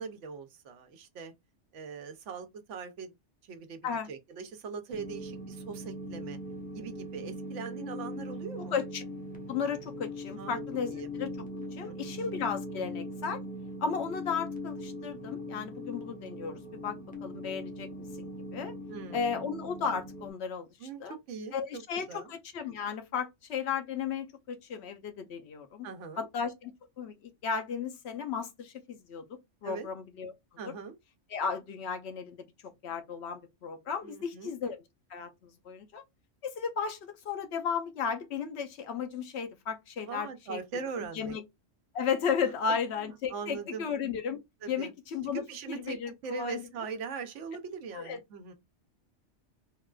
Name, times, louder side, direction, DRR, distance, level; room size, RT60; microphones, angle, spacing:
voice 1, 0.0-1.3 1.7-3.1 3.4-6.4 6.7-8.7 10.4-10.6 10.9-11.1 11.8-12.3 18.9-19.3 20.8-22.3 25.8-26.3 29.6-29.9 30.6-31.0 34.0-34.5 40.1-41.4 42.6-43.9 44.6-44.9 45.3-46.0 46.2-48.5, right 5 dB, 80° right, 1.0 m, -41 dB
sound 1, 4.9-20.3, left 1 dB, 10° left, 0.7 m, -40 dB
voice 2, 8.7-9.0 9.5-11.3 11.7-13.4 13.8-17.9 18.2-18.7 19.1-21.2 21.5-25.9 26.2-29.2 29.6-30.3 30.6-30.7 31.3-32.4 32.8-34.8 35.1-36.0 36.4-40.6 41.1-41.4 41.9-44.4 44.7-46.6 47.9-48.2, left 6 dB, 65° left, 0.8 m, -34 dB
3.5 x 2.3 x 2.3 m
omnidirectional pair, 1.2 m